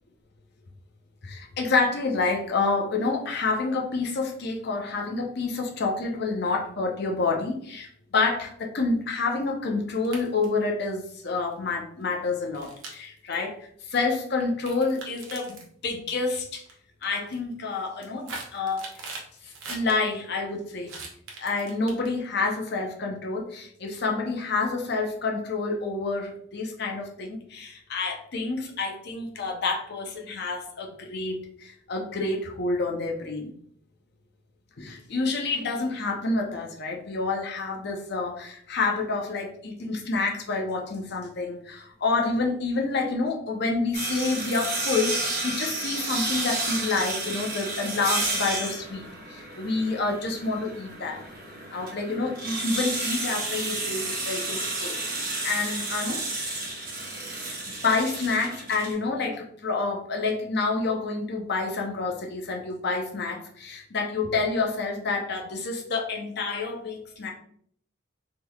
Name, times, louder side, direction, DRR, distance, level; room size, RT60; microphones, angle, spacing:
voice 1, 1.2-13.6 13.9-16.6 17.0-19.0 19.4-20.9 21.4-33.5 34.8-51.2 51.7-55.0 55.4-56.2 57.5-57.6 57.8-67.3, left 3 dB, 50° left, 1 dB, 0.6 m, -28 dB
sound 1, 9.9-10.6 11.4-11.5 12.5-13.3 14.4-15.7 16.4-16.7 17.0-17.4 17.8-19.9 20.9-22.3, right 3 dB, 70° right, 0.7 m, -40 dB
sound 2, 43.9-58.9, right 2 dB, 45° right, 1.0 m, -31 dB
3.6 x 3.1 x 2.2 m, 0.62 s
head